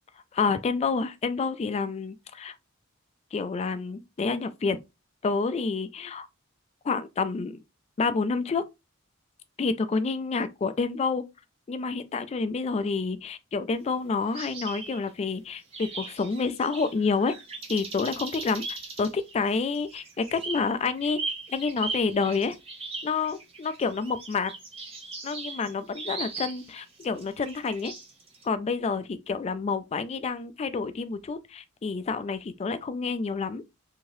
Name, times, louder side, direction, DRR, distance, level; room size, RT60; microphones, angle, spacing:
voice 1, 0.3-2.6 3.3-4.8 5.2-6.3 6.8-7.6 8.0-8.6 9.6-11.3 11.7-17.3 17.7-18.6 19.0-21.2 21.5-22.6 23.0-24.5 25.2-27.9 28.4-33.6, left 4 dB, 30° left, 0.3 m, -28 dB
sound 1, 14.3-15.3 15.7-28.4, right 3 dB, 30° right, 0.8 m, -39 dB
2.8 x 2.7 x 3.0 m
head